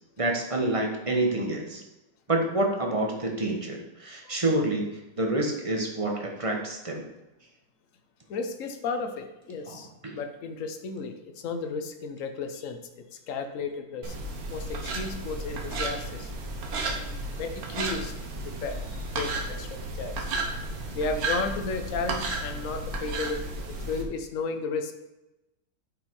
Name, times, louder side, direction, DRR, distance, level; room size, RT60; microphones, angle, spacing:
voice 1, 0.2-1.8 2.3-7.1 9.7-9.8, right 2 dB, 20° right, 1 dB, 1.0 m, -28 dB
voice 2, 8.3-14.2 14.5-16.3 16.9-20.3 20.9-25.1, left 4 dB, 55° left, 7 dB, 0.9 m, -34 dB
sound 1, 14.0-24.0, right 2 dB, 50° right, 1.5 m, -33 dB
9.1 x 5.4 x 4.7 m, 0.99 s
omnidirectional pair, 2.2 m